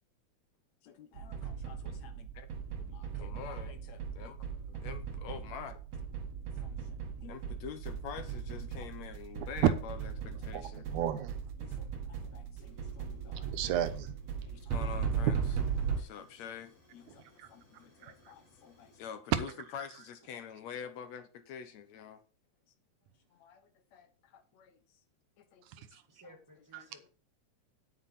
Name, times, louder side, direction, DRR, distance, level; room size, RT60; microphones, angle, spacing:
voice 1, 0.8-2.5 2.8-5.8 6.6-11.0 11.6-13.5 14.4-15.4 16.0-22.2 23.3-24.8 25.4-25.9 26.2-26.4 26.8-27.1, left 7 dB, 70° left, 2.2 m, -47 dB
sound 1, 1.1-16.0, right 6 dB, 65° right, 2.7 m, -38 dB
voice 2, 10.5-11.4 13.4-14.2 17.4-17.5 18.0-18.1 19.3-19.4 25.7-26.0 26.7-26.8, right 10 dB, 90° right, 2.4 m, -34 dB
Fire, 12.6-19.2, left 1 dB, 50° left, 5.9 m, -62 dB
voice 3, 26.1-27.1, equal, 10° right, 1.6 m, -56 dB
9.5 x 9.2 x 4.2 m
omnidirectional pair, 3.4 m